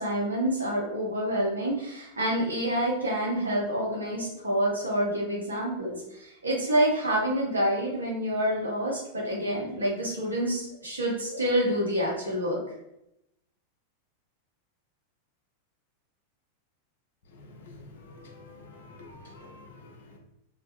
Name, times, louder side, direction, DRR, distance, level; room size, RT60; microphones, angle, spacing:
voice 1, 0.0-12.6, right 1 dB, 75° right, -4 dB, 0.8 m, -27 dB
voice 2, 17.4-20.2, left 2 dB, 60° left, 1 dB, 0.6 m, -48 dB
2.2 x 2.2 x 2.8 m, 0.86 s
figure-of-eight pair, 90°, 0 cm